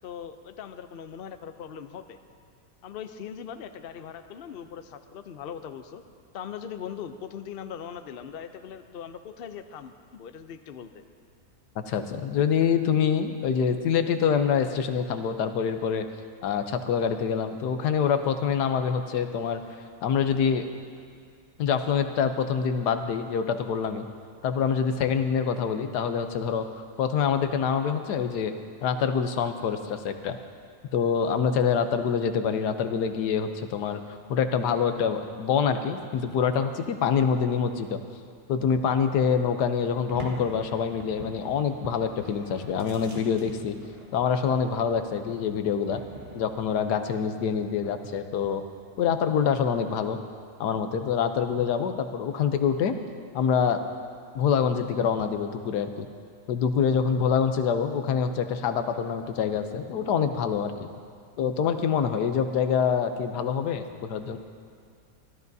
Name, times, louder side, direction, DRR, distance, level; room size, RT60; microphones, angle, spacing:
voice 1, 0.0-2.2 2.8-6.0 6.3-11.0, left 8 dB, 60° left, 8 dB, 0.6 m, -40 dB
voice 2, 11.8-16.1 16.4-19.6 20.0-20.7 21.6-24.0 24.4-26.7 27.0-28.5 28.8-30.4 30.9-38.0 38.5-43.8 44.1-46.0 46.3-48.6 49.0-50.2 50.6-53.0 53.3-53.8 54.3-56.1 56.5-60.9 61.4-64.4, left 7 dB, 85° left, 8 dB, 1.3 m, -26 dB
sound 1, 40.1-46.8, right 1 dB, 35° right, 1.9 m, -45 dB
25.5 x 13.0 x 2.7 m, 2.1 s
omnidirectional pair, 1.7 m